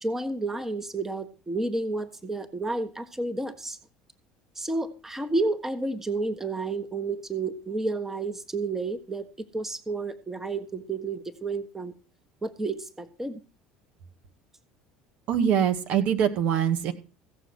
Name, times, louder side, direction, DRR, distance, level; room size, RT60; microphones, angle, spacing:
voice 1, 0.0-3.8 4.6-9.3 9.5-11.9 12.4-13.4, right 3 dB, 15° right, 9 dB, 1.5 m, -31 dB
voice 2, 15.3-16.9, right 9 dB, 60° right, 7 dB, 2.0 m, -23 dB
16.0 x 7.0 x 6.3 m, 0.34 s
hypercardioid pair, 75°, 3 cm